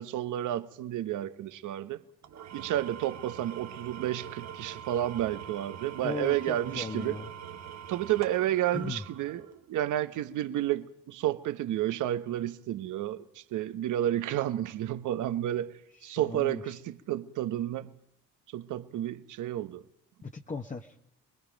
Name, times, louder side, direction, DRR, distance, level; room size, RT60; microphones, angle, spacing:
voice 1, 0.0-2.0 2.5-7.2 7.9-17.9 18.5-19.8, right 12 dB, 80° right, 1.0 m, -31 dB
Engine / Tools, 2.2-9.7, right 9 dB, 60° right, 1.2 m, -44 dB
voice 2, 6.0-7.3 8.7-9.0 16.2-16.6 20.2-21.1, left 4 dB, 25° left, 1.0 m, -37 dB
25.5 x 21.0 x 5.2 m
cardioid pair, 90°, 30 cm